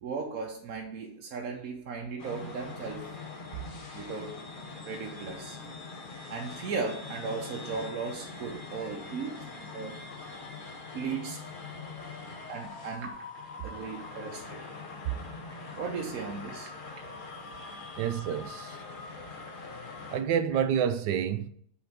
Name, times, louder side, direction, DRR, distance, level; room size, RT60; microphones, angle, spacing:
voice 1, 0.0-3.1 3.9-4.3 4.8-5.6 6.3-9.4 9.7-9.9 10.9-11.4 12.5-13.2 13.6-14.6 15.8-16.7, right 5 dB, 60° right, 1.2 m, -36 dB
sound 1, 2.2-20.2, left 3 dB, 40° left, 0.8 m, -43 dB
voice 2, 18.0-18.8 20.1-21.5, right 8 dB, 85° right, 1.3 m, -28 dB
5.7 x 4.2 x 5.8 m
omnidirectional pair, 1.8 m